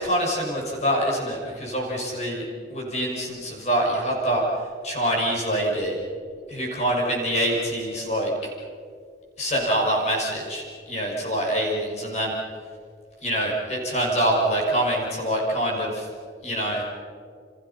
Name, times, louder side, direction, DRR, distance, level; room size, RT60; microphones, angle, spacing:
voice 1, 0.0-2.4 2.7-4.4 4.8-5.9 6.5-8.3 9.4-12.3 13.2-16.1 16.4-16.9, right 1 dB, 40° left, -1 dB, 6.1 m, -25 dB
30.0 x 27.5 x 5.7 m, 2.2 s
head